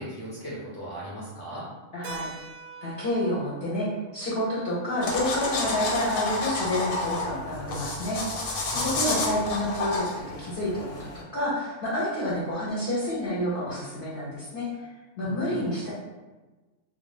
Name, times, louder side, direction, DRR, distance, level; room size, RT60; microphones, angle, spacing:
voice 1, 0.0-1.7 8.7-9.2 15.2-15.7, equal, 25° right, -9 dB, 0.6 m, -38 dB
voice 2, 1.9-2.3 2.8-8.2 8.7-14.8 15.2-15.9, left 1 dB, 50° left, -7 dB, 0.7 m, -29 dB
Keyboard (musical), 2.0-6.5, right 4 dB, 90° right, 1.0 m, -45 dB
sound 1, 5.0-11.2, left 2 dB, 90° left, 1.0 m, -30 dB
2.4 x 2.2 x 3.2 m, 1.2 s
omnidirectional pair, 1.3 m